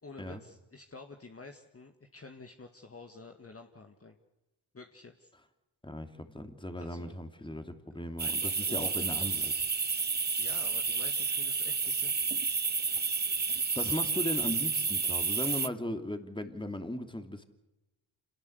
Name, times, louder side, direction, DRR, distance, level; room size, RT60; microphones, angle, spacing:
voice 1, 0.0-4.2 4.7-5.3 6.8-7.2 8.2-9.4 10.4-12.4, left 3 dB, 30° left, 4 dB, 2.1 m, -50 dB
voice 2, 5.8-9.5 13.5-17.4, left 1 dB, 10° left, 7 dB, 3.0 m, -37 dB
sound 1, 8.2-15.7, right 5 dB, 20° right, 0.8 m, -30 dB
27.0 x 19.0 x 8.2 m, 1.0 s
supercardioid pair, 50°, 48 cm